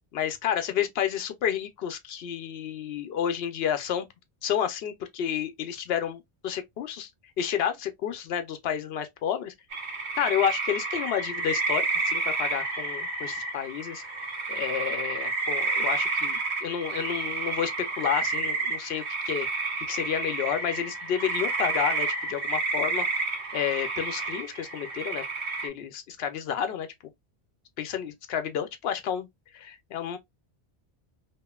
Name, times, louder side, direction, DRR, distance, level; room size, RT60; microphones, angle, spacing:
voice 1, 0.1-4.1 4.4-7.1 7.4-9.5 10.2-14.0 14.5-19.5 19.9-23.1 23.5-25.3 25.6-26.9 27.8-29.3 29.5-30.2, left 9 dB, 70° left, 0.8 m, -30 dB
sound 1, 9.7-25.7, right 3 dB, 80° right, 1.3 m, -30 dB
2.9 x 2.5 x 2.2 m
omnidirectional pair, 1.1 m